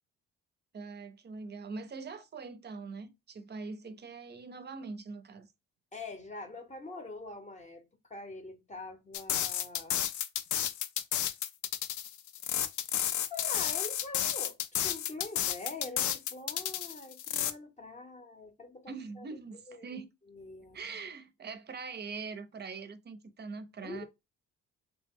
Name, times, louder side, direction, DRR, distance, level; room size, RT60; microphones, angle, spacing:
voice 1, 0.7-5.5 18.9-20.1 20.7-24.0, right 4 dB, 35° right, 0.6 m, -43 dB
voice 2, 5.9-7.8 8.1-10.0 13.3-14.6 14.8-19.3 19.7-19.8 20.3-20.8 23.8-24.0, left 2 dB, 25° left, 0.7 m, -44 dB
sound 1, 9.1-17.5, left 11 dB, 75° left, 0.4 m, -32 dB
3.1 x 2.0 x 3.5 m
cardioid pair, 90°, 30 cm